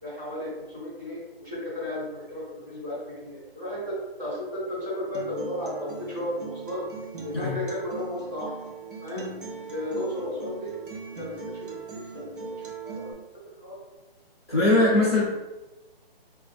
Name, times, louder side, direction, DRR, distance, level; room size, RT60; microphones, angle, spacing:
voice 1, 0.0-6.8 7.2-8.5 9.0-10.7 11.2-12.3 12.8-13.1 13.6-13.8 14.8-15.1, left 1 dB, 20° right, -10 dB, 0.9 m, -34 dB
Acoustic guitar, 5.1-13.1, right 4 dB, 55° right, 0.7 m, -40 dB
voice 2, 14.5-15.2, left 2 dB, 25° left, -9 dB, 0.5 m, -20 dB
4.0 x 2.4 x 2.2 m, 1.1 s
hypercardioid pair, 175°, 31 cm